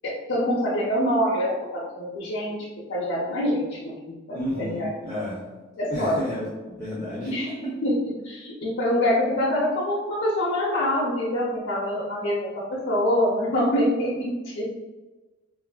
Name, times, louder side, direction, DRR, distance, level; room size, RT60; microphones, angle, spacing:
voice 1, 0.0-4.9 5.8-6.2 7.2-14.7, left 1 dB, 75° left, -6 dB, 0.5 m, -25 dB
voice 2, 4.3-5.4 5.9-7.3, left 1 dB, 15° right, -10 dB, 0.5 m, -31 dB
3.0 x 2.4 x 2.2 m, 1.2 s
head